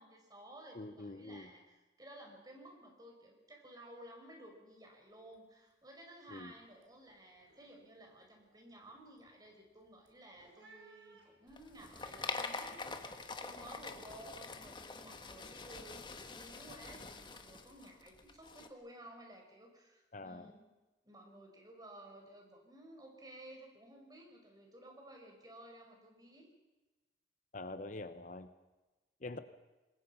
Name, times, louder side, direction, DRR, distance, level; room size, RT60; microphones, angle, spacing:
voice 1, 0.0-20.7 21.0-26.5, right 1 dB, 20° right, 2 dB, 5.2 m, -55 dB
voice 2, 0.8-1.5 6.3-6.5 20.1-20.5 27.5-28.5 29.2-29.4, left 2 dB, 45° left, 10 dB, 1.0 m, -45 dB
sound 1, 4.7-5.0 5.3-5.7 6.1-12.1, right 3 dB, 80° right, 5.6 m, -66 dB
sound 2, 11.5-18.7, left 4 dB, 25° left, 1.6 m, -45 dB
26.5 x 21.0 x 5.7 m, 1.1 s
head